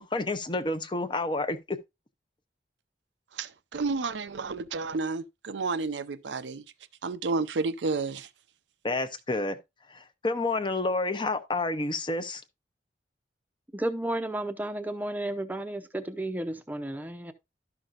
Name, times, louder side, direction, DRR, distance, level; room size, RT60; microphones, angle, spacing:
voice 1, 0.0-1.8 8.8-9.6 9.9-12.4, left 2 dB, 25° left, 0.7 m, -29 dB
voice 2, 3.3-6.6 7.0-8.3, right 4 dB, 90° right, 0.6 m, -31 dB
voice 3, 13.7-17.3, right 1 dB, 10° right, 0.6 m, -32 dB
12.5 x 6.0 x 2.5 m
head